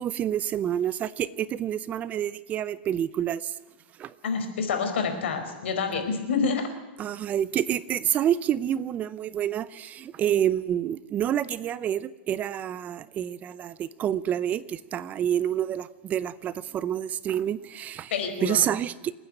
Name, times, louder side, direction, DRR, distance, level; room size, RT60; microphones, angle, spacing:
voice 1, 0.0-3.4 4.0-4.1 7.0-18.1 18.4-19.1, right 10 dB, 25° right, 17 dB, 0.6 m, -28 dB
voice 2, 4.2-6.7 18.1-18.6, left 5 dB, 80° left, 6 dB, 4.9 m, -27 dB
28.5 x 9.6 x 9.9 m, 1.2 s
supercardioid pair, 145°, 6 cm